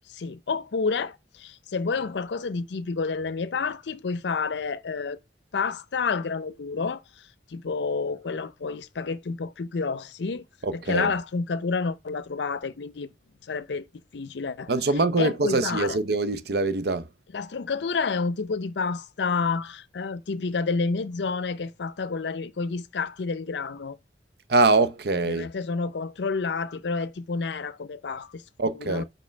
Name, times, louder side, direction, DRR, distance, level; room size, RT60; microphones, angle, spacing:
voice 1, 0.1-5.2 5.5-7.0 7.5-10.4 10.7-13.1 13.5-13.8 14.1-14.7 15.2-16.0 17.3-24.0 25.3-28.4 28.7-29.0, left 4 dB, 75° left, 0.5 m, -29 dB
voice 2, 10.6-11.1 14.7-17.1 24.5-25.5 28.6-29.0, right 3 dB, 60° right, 0.6 m, -23 dB
5.4 x 4.3 x 5.0 m
head